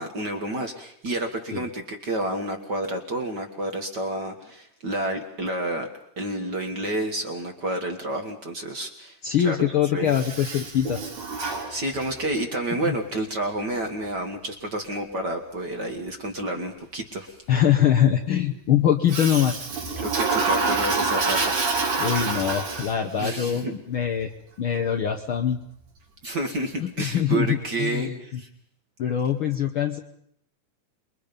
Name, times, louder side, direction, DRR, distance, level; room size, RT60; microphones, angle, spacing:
voice 1, 0.0-5.9 6.2-9.7 9.9-10.1 11.7-17.5 20.0-21.7 23.2-23.7 26.2-28.5, right 1 dB, 45° right, 4 dB, 1.7 m, -30 dB
voice 2, 9.2-11.0 12.8-12.9 17.5-19.6 22.0-24.3 24.6-25.6 26.8-28.4 29.0-30.0, left 9 dB, 60° left, 3 dB, 1.4 m, -23 dB
Toilet flush, 10.1-12.3 19.1-23.2, right 3 dB, 75° right, 5.1 m, -27 dB
27.5 x 22.5 x 5.3 m, 0.71 s
omnidirectional pair, 3.5 m